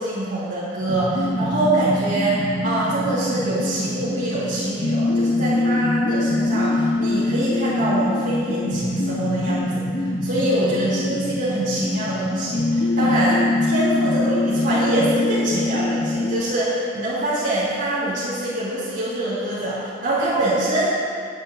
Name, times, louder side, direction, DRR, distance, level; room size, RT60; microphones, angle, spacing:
voice 1, 0.0-21.0, right 1 dB, 65° right, -13 dB, 3.1 m, -24 dB
sound 1, 0.9-16.4, left 2 dB, 85° left, 1.3 m, -23 dB
20.0 x 9.6 x 2.7 m, 2.1 s
head